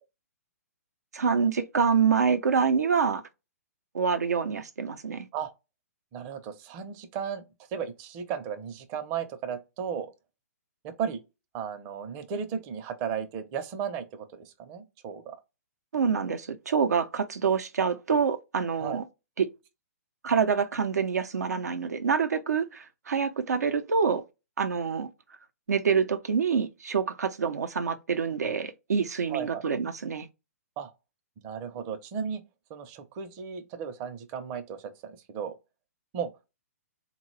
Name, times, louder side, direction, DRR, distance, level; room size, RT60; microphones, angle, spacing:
voice 1, 1.1-3.2 3.9-5.3 15.9-19.0 19.4-19.5 20.2-24.2 24.6-25.1 25.7-30.3, right 6 dB, 80° right, 0.6 m, -26 dB
voice 2, 6.1-7.4 7.7-10.1 10.8-11.2 11.5-15.4 18.8-19.0 29.3-29.6 30.8-30.9 31.4-32.4 32.7-35.6 36.1-36.3, right 7 dB, 35° right, 0.7 m, -35 dB
3.7 x 2.3 x 3.2 m
hypercardioid pair, 130°, 9 cm